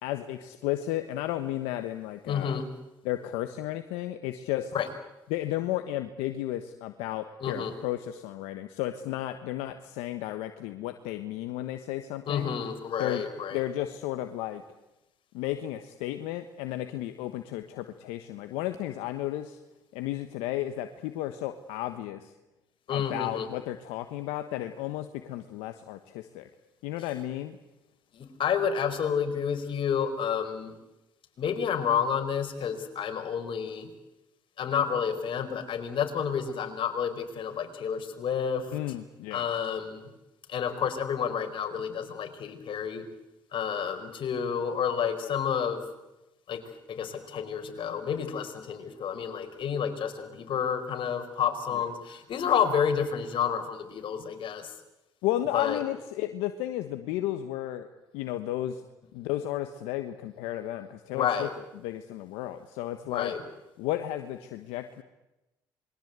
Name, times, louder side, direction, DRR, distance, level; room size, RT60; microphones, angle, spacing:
voice 1, 0.0-2.6 3.0-4.7 5.3-12.5 13.0-13.2 13.5-14.6 15.3-19.6 19.9-22.3 22.9-26.5 26.8-27.6 38.7-39.5 51.7-51.8 55.2-57.9 58.1-58.8 59.1-61.5 61.8-63.3 63.8-65.0, left 13 dB, 85° left, 8 dB, 1.3 m, -33 dB
voice 2, 2.3-2.6 4.7-4.9 7.4-7.7 12.3-13.6 22.9-23.5 28.1-30.7 31.4-33.9 34.6-38.7 39.3-40.1 40.5-43.0 43.5-45.8 46.5-46.6 46.9-54.7 55.5-55.8 61.1-61.5 63.0-63.4, left 7 dB, 60° left, 6 dB, 4.6 m, -30 dB
27.0 x 22.5 x 8.3 m, 0.97 s
supercardioid pair, 60°, 10 cm